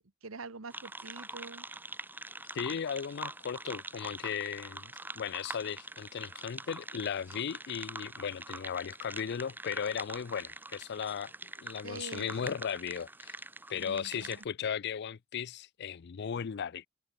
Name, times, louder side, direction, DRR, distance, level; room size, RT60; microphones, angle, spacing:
voice 1, 0.0-1.6 11.8-12.5 13.7-14.4, right 3 dB, 80° right, 1.4 m, -45 dB
sound 1, 0.7-14.4, right 2 dB, 10° right, 2.1 m, -44 dB
voice 2, 2.5-11.3 11.6-13.4 13.7-16.9, left 7 dB, 55° left, 0.4 m, -36 dB
head